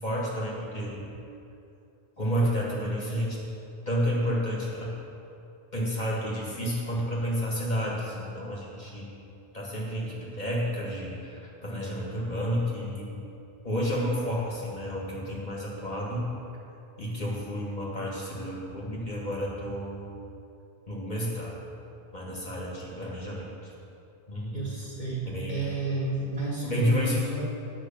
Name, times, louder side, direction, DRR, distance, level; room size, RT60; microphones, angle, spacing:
voice 1, 0.0-1.0 2.2-3.4 3.9-4.9 5.7-9.1 9.5-13.2 13.6-16.3 17.0-20.1 20.9-21.5 22.1-23.7 24.3-24.6 25.3-25.6 26.6-27.2, equal, 45° left, -4 dB, 2.0 m, -30 dB
voice 2, 24.5-27.4, right 3 dB, 45° right, -5 dB, 2.1 m, -32 dB
10.0 x 5.8 x 7.2 m, 2.7 s
omnidirectional pair, 1.1 m